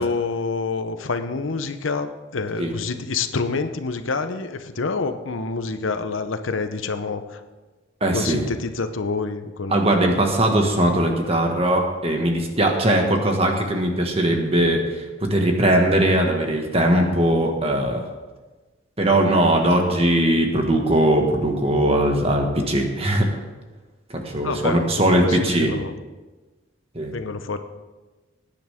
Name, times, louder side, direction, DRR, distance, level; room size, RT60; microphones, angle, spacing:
voice 1, 0.0-7.4 8.1-9.7 24.4-25.9 27.1-27.6, left 4 dB, 80° left, 9 dB, 0.8 m, -27 dB
voice 2, 8.0-8.4 9.7-18.0 19.0-23.3 24.1-25.7 26.9-27.1, right 1 dB, 30° right, 2 dB, 1.7 m, -20 dB
20.0 x 9.9 x 3.6 m, 1.2 s
head